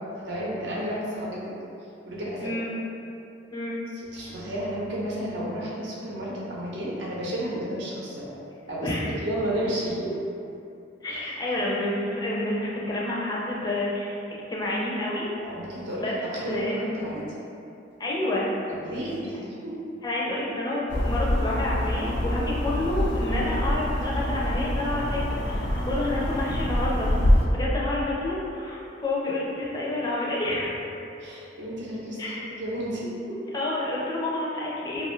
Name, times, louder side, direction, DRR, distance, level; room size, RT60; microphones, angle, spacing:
voice 1, 0.1-1.6 2.0-2.5 4.0-8.4 8.7-8.9 9.2-10.1 11.1-11.2 11.5-11.6 15.5-17.3 18.8-19.8 31.2-32.3 32.6-33.4, right 1 dB, 75° right, -6 dB, 0.7 m, -32 dB
voice 2, 2.4-2.7 3.5-3.8 8.8-9.1 11.0-14.2 14.5-15.3 15.9-16.1 16.5-16.9 18.0-18.5 20.0-27.1 27.4-30.8 32.2-32.4 33.5-35.1, left 1 dB, 20° left, -5 dB, 0.5 m, -29 dB
sound 1, 20.9-27.5, left 1 dB, 85° left, 0.4 m, -25 dB
2.6 x 2.4 x 3.0 m, 2.7 s
head